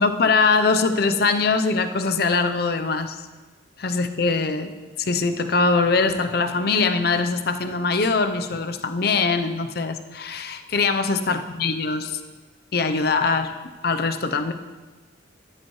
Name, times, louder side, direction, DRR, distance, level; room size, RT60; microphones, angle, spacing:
voice 1, 0.0-3.2 3.8-12.2 12.7-13.5 13.8-14.5, left 4 dB, 50° left, 8 dB, 0.6 m, -22 dB
13.0 x 11.0 x 3.1 m, 1.3 s
head